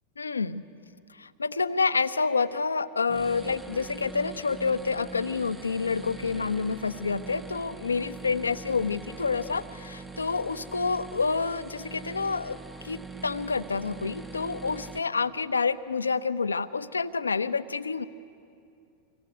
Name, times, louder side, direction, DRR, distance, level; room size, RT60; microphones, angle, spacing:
voice 1, 0.2-0.6 1.1-12.6 12.8-18.1, left 4 dB, 75° left, 12 dB, 0.8 m, -28 dB
sound 1, 3.1-15.0, right 3 dB, 10° right, 1.2 m, -43 dB
26.0 x 24.0 x 9.5 m, 2.5 s
figure-of-eight pair, 90°, 0 cm